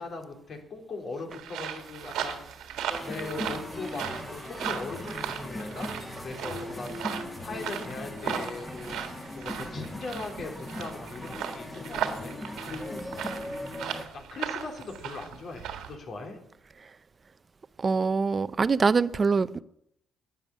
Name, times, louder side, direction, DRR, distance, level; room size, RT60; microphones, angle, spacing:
voice 1, 0.0-2.4 3.0-5.9 6.2-6.9 7.4-9.0 9.3-13.0 14.1-16.4, left 3 dB, 55° left, 3.4 m, -39 dB
sound 1, 1.3-16.0, right 9 dB, 90° right, 1.7 m, -37 dB
sound 2, 2.9-14.1, left 1 dB, 15° left, 2.2 m, -39 dB
voice 2, 17.8-19.6, right 4 dB, 35° right, 0.6 m, -24 dB
10.5 x 10.0 x 8.5 m
cardioid pair, 90°, 0 cm